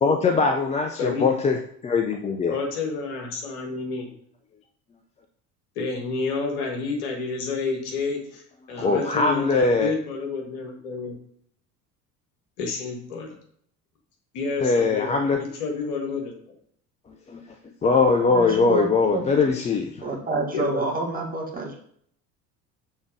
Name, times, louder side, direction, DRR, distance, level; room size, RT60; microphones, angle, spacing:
voice 1, 0.0-2.6 8.8-9.9 14.6-15.4 17.3-17.4 17.8-20.1, left 4 dB, 15° left, 4 dB, 0.4 m, -21 dB
voice 2, 2.5-4.1 5.8-8.4 8.7-11.2 12.6-13.3 14.3-16.6 20.5-20.8, left 4 dB, 65° left, 2 dB, 1.7 m, -29 dB
voice 3, 18.3-19.2 20.0-21.8, right 3 dB, 20° right, -1 dB, 1.7 m, -28 dB
6.2 x 3.6 x 4.9 m, 0.64 s
figure-of-eight pair, 60°, 46 cm